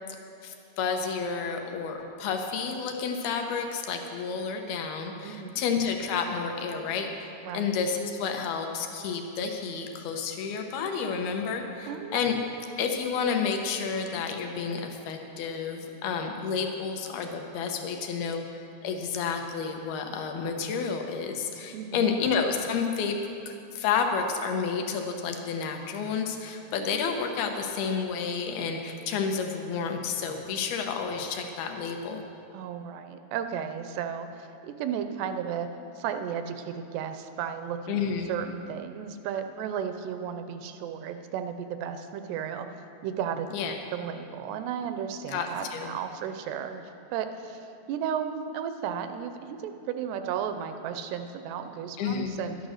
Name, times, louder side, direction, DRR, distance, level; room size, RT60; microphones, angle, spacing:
voice 1, 0.4-12.4 12.8-23.2 23.5-32.2 37.9-38.3 43.5-43.8 45.3-45.9 52.0-52.4, left 6 dB, 70° left, 4 dB, 2.6 m, -30 dB
voice 2, 5.2-5.6 7.4-7.7 11.9-12.2 21.7-22.1 32.5-35.7 36.0-38.0 38.3-42.8 43.0-43.5 43.9-52.6, right 8 dB, 85° right, 8 dB, 2.5 m, -34 dB
12.0 x 10.5 x 6.4 m, 2.7 s
omnidirectional pair, 5.0 m